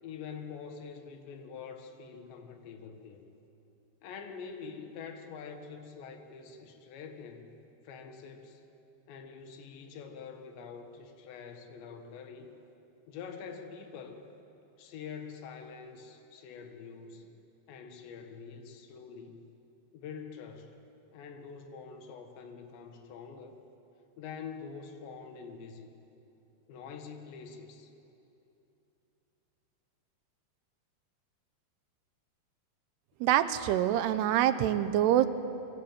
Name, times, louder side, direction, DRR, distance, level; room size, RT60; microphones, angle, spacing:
voice 1, 0.0-3.3 4.0-7.5 7.9-8.6 9.1-12.6 13.1-14.2 14.8-17.4 17.7-19.4 19.9-20.8 21.1-23.6 24.2-25.9 26.7-27.9, left 6 dB, 85° left, 5 dB, 3.8 m, -45 dB
voice 2, 33.2-35.3, right 12 dB, 75° right, 11 dB, 2.9 m, -25 dB
25.5 x 24.0 x 8.9 m, 2.9 s
omnidirectional pair, 4.9 m